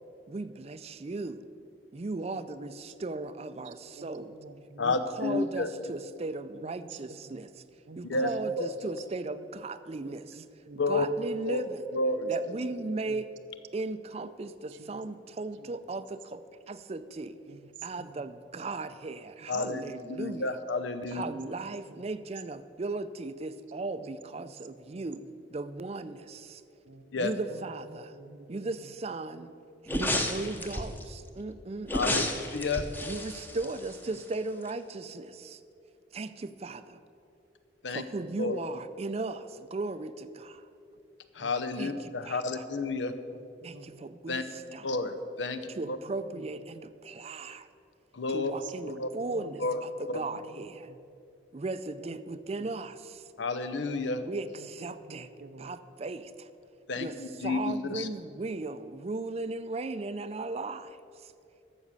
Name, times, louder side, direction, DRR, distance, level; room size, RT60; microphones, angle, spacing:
voice 1, 0.3-1.4 1.9-4.3 4.8-7.6 8.0-10.5 10.7-12.0 12.3-13.3 13.7-17.4 17.8-20.6 21.1-25.2 25.5-26.6 27.2-28.2 28.5-29.5 29.8-32.4 33.0-35.6 36.1-37.0 37.9-40.7 41.8-42.6 43.6-44.9 45.7-47.7 48.3-50.9 51.5-53.3 54.2-55.3 55.6-56.5 57.0-61.3, right 3 dB, 35° right, 13 dB, 0.4 m, -37 dB
voice 2, 4.0-5.0 6.5-7.4 7.9-8.6 10.0-11.0 12.5-12.6 13.1-13.2 14.7-15.0 15.6-15.7 17.5-17.7 18.0-18.2 21.1-21.4 21.9-22.0 24.0-24.1 24.4-24.5 24.9-25.0 26.8-27.2 27.5-27.7 28.1-28.9 30.6-31.0 41.4-41.6 41.9-42.0 43.3-44.0 45.8-45.9 46.3-46.5 48.4-49.0 49.3-49.8 50.2-51.0 52.0-52.7 54.5-55.8, right 3 dB, 90° right, 8 dB, 0.8 m, -50 dB
voice 3, 4.8-5.7 8.0-8.3 8.6-8.7 10.8-11.1 11.5-11.6 11.9-12.3 19.5-19.8 20.1-21.2 27.1-27.3 31.9-32.2 32.5-32.8 37.8-38.0 38.4-38.6 41.3-43.1 44.3-44.4 44.8-45.6 45.9-46.0 48.1-48.5 48.9-49.1 49.6-49.8 50.1-50.2 53.4-54.2 56.9-58.1, left 3 dB, 85° left, 9 dB, 0.8 m, -30 dB
sound 1, 29.9-31.0 31.9-34.3 34.6-34.7, left 1 dB, 10° left, 0.8 m, -32 dB
12.0 x 7.4 x 6.8 m, 2.6 s
head